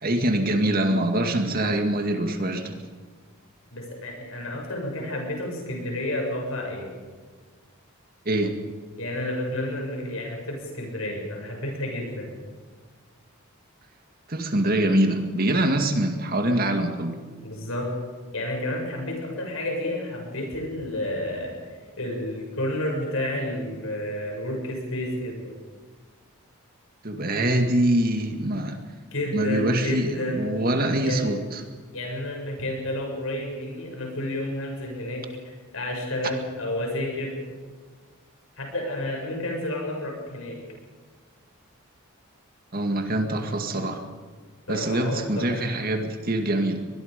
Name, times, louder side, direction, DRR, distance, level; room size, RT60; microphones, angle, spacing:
voice 1, 0.0-2.8 8.3-8.5 14.3-17.2 27.0-28.8 29.3-31.6 42.7-44.0 44.7-46.8, right 1 dB, 40° right, 5 dB, 2.0 m, -24 dB
voice 2, 3.7-6.9 9.0-12.3 17.4-17.9 18.3-21.6 22.0-25.6 29.1-30.4 31.0-31.2 31.9-35.2 35.7-37.4 38.6-40.6 44.7-45.7, left 1 dB, 70° left, 1 dB, 7.2 m, -30 dB
23.5 x 20.5 x 5.3 m, 1.5 s
head